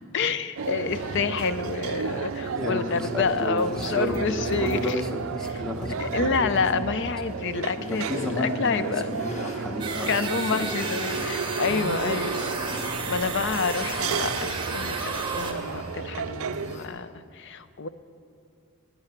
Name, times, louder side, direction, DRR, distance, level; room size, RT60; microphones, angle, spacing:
voice 1, 0.1-5.0 5.4-5.6 6.0-9.1 10.1-12.4 12.8-17.9, left 5 dB, 55° left, 13 dB, 0.5 m, -28 dB
sound 1, 0.6-16.8, right 6 dB, 65° right, 0.4 m, -33 dB
sound 2, 0.8-16.9, equal, 30° left, 1.6 m, -41 dB
voice 2, 2.5-4.3 4.6-6.5 7.9-10.7 12.7-13.1, equal, 5° left, 2 dB, 1.0 m, -32 dB
sound 3, 9.8-15.5, right 4 dB, 20° right, 1.1 m, -32 dB
15.5 x 9.4 x 5.8 m, 2.4 s
head